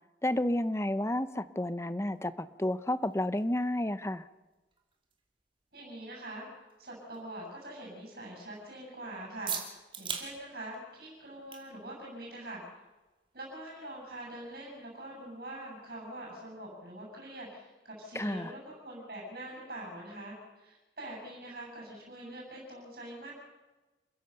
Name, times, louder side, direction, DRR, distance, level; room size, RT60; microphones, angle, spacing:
voice 1, 0.2-4.2 18.1-18.5, left 1 dB, 15° left, 13 dB, 0.6 m, -31 dB
sound 1, 1.1-16.4, right 6 dB, 30° right, 2.8 m, -48 dB
voice 2, 5.7-6.5 6.8-12.6 13.3-23.3, right 1 dB, 50° right, -1 dB, 7.5 m, -44 dB
28.5 x 15.5 x 6.7 m, 1.2 s
head